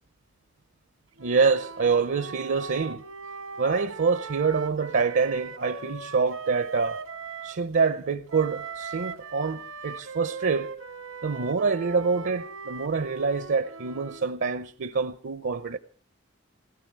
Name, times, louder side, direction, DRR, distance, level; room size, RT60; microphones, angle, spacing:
voice 1, 1.2-3.0 3.6-7.0 7.4-10.7 11.2-15.8, right 5 dB, 60° right, 0.7 m, -26 dB
Wind instrument woodwind instrument, 1.2-7.6 8.3-14.3, right 5 dB, 85° right, 1.4 m, -40 dB
17.5 x 16.5 x 4.6 m
head